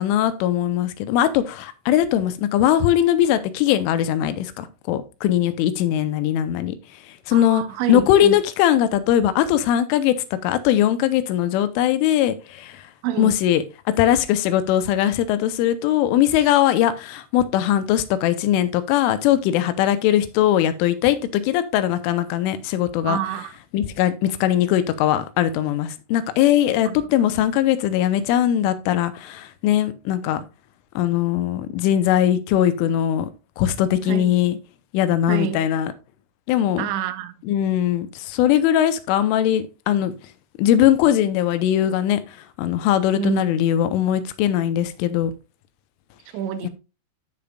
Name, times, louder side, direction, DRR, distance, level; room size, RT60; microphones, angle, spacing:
voice 1, 0.0-6.7 7.1-7.6 7.9-12.8 13.2-13.6 14.0-23.2 23.7-30.4 31.0-33.3 33.6-34.6 34.9-35.9 36.5-36.9 37.5-40.1 40.6-45.3 46.6-46.7, left 11 dB, 90° left, 3.2 m, -20 dB
voice 2, 7.3-8.3 13.0-13.3 23.0-23.5 26.9-27.0 34.1-34.3 35.3-35.6 36.8-37.3 43.1-43.5 46.3-46.7, right 9 dB, 80° right, 2.8 m, -27 dB
15.0 x 5.2 x 2.3 m
omnidirectional pair, 5.6 m